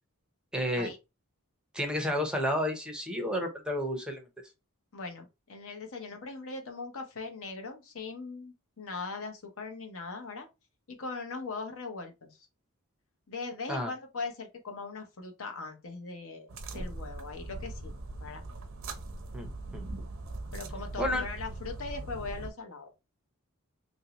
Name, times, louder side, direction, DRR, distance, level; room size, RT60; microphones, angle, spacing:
voice 1, 0.5-0.9 1.7-4.2 13.7-13.9 19.3-19.8 21.0-21.3, equal, 5° right, 0.6 m, -31 dB
voice 2, 4.9-10.5 10.9-12.4 13.3-17.9 18.2-18.4 20.5-22.9, left 4 dB, 65° left, 0.8 m, -40 dB
sound 1, 16.5-22.5, right 2 dB, 60° right, 0.6 m, -40 dB
3.0 x 2.7 x 2.8 m
head